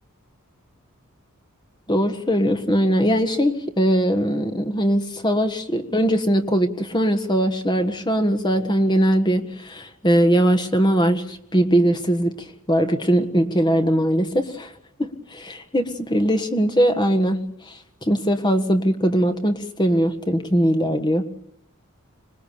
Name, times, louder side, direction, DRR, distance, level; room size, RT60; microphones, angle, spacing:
voice 1, 1.9-12.3 12.7-14.7 15.0-17.7 18.0-21.2, equal, 20° left, 7 dB, 1.6 m, -20 dB
26.0 x 20.0 x 6.9 m, 0.74 s
head